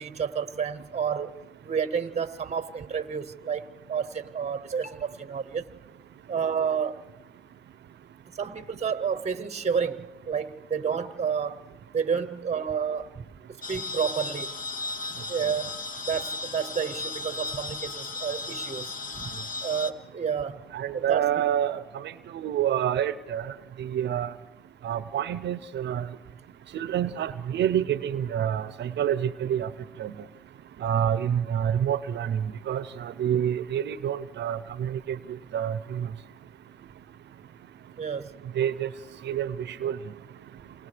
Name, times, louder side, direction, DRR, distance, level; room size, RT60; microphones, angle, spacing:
voice 1, 0.0-5.7 6.3-7.1 8.3-11.7 11.9-13.2 13.5-14.6 15.3-15.7 16.1-19.3 19.6-20.6 20.9-21.3 38.0-38.4, right 7 dB, 40° right, 0.8 m, -30 dB
sound 1, 13.6-19.9, left 3 dB, 50° left, 1.2 m, -35 dB
voice 2, 20.7-21.8 22.3-23.5 23.8-24.3 24.8-26.1 26.7-29.7 30.0-30.1 30.8-32.4 32.7-35.2 35.5-36.1 38.6-38.9 39.2-39.5 39.8-40.0, right 10 dB, 80° right, 0.6 m, -27 dB
28.5 x 28.0 x 3.3 m
cardioid pair, 65°, 18 cm